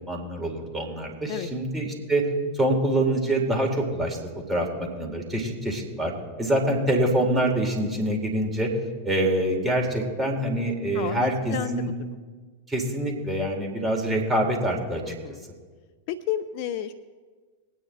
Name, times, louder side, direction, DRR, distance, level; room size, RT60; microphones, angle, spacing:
voice 1, 0.1-2.3 2.5-4.2 4.5-6.1 6.4-8.7 9.0-11.9 12.7-15.1, right 1 dB, 15° right, 0 dB, 2.7 m, -25 dB
voice 2, 10.9-11.8 15.0-15.4 16.1-16.9, left 10 dB, 45° left, 12 dB, 0.5 m, -31 dB
21.0 x 9.4 x 3.3 m, 1.5 s
figure-of-eight pair, 90°, 0 cm